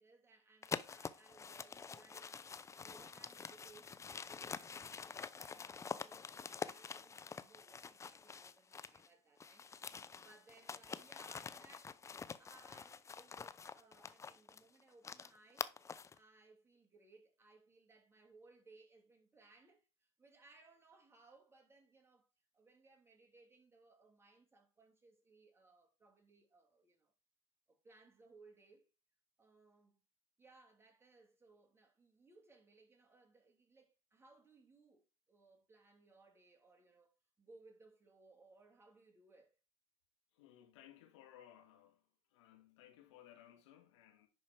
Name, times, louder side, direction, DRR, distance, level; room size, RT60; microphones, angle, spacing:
voice 1, 0.0-2.4 2.8-9.7 9.9-12.0 12.4-15.7 16.1-22.3 22.5-27.1 27.7-28.9 29.4-30.0 30.4-39.6, right 3 dB, 15° right, 2.8 m, -65 dB
sound 1, 0.6-9.1 9.4-16.2, left 5 dB, 20° left, 0.5 m, -47 dB
voice 2, 40.3-42.0 42.3-44.3, left 11 dB, 80° left, 2.0 m, -61 dB
10.5 x 4.4 x 4.5 m
hypercardioid pair, 90°, 15 cm